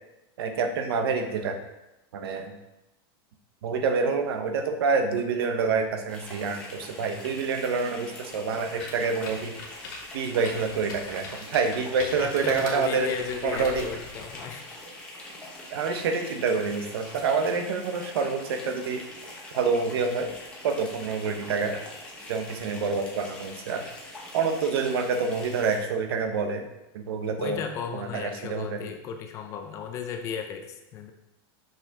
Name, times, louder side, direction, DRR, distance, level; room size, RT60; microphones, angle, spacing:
voice 1, 0.4-1.6 2.1-2.5 3.6-9.5 10.1-13.1 13.4-13.9 15.7-19.0 19.5-20.3 20.6-21.8 22.3-23.8 24.3-26.6 26.9-27.6 28.0-28.8, right 5 dB, 75° right, 5 dB, 1.0 m, -27 dB
sound 1, 6.1-25.8, left 1 dB, 10° left, 1.0 m, -43 dB
sound 2, 8.7-14.8, left 3 dB, 55° left, 1.7 m, -42 dB
voice 2, 12.2-14.7 27.4-31.1, left 6 dB, 25° left, 5 dB, 0.5 m, -35 dB
6.0 x 5.6 x 3.6 m, 0.94 s
supercardioid pair, 175°, 13 cm